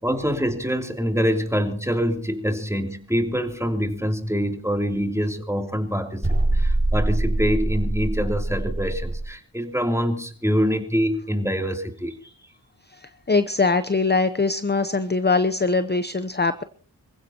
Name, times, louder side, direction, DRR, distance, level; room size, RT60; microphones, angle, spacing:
voice 1, 0.0-12.2, equal, 5° right, 4 dB, 3.1 m, -25 dB
sound 1, 6.2-9.3, right 2 dB, 30° right, 5.6 m, -23 dB
voice 2, 13.0-16.6, left 3 dB, 25° left, 12 dB, 0.8 m, -22 dB
26.0 x 16.0 x 2.9 m, 0.43 s
wide cardioid pair, 40°, 44 cm